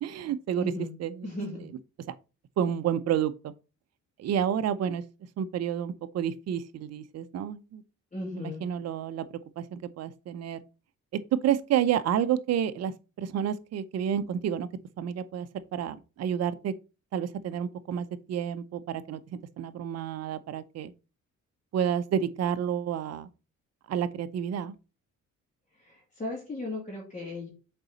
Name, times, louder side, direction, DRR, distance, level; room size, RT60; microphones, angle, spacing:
voice 1, 0.0-0.7 1.0-1.3 2.6-3.5 4.2-5.0 5.4-7.8 8.4-9.2 9.6-10.6 11.4-12.9 13.2-14.7 15.0-15.5 15.7-16.7 17.1-19.2 19.6-20.9 21.7-23.3 23.9-24.7, right 9 dB, 55° right, 0.6 m, -30 dB
voice 2, 0.5-0.9 1.2-1.6 8.1-8.6 25.8-27.5, left 2 dB, 25° left, 2.6 m, -36 dB
6.7 x 4.1 x 4.0 m
cardioid pair, 90°, 30 cm